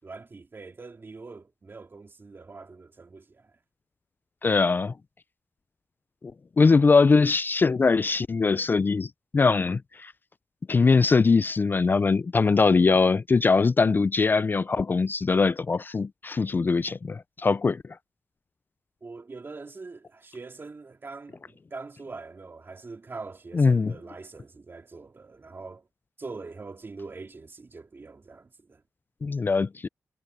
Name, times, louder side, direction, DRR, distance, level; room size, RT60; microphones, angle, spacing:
voice 1, 0.0-3.5 19.0-25.9 26.2-28.8, right 3 dB, 40° right, 3.7 m, -43 dB
voice 2, 4.4-4.9 6.6-9.1 9.3-10.1 10.7-17.8 23.5-23.9 29.2-29.9, left 4 dB, 35° left, 0.3 m, -21 dB
wide cardioid pair, 95°, 6 cm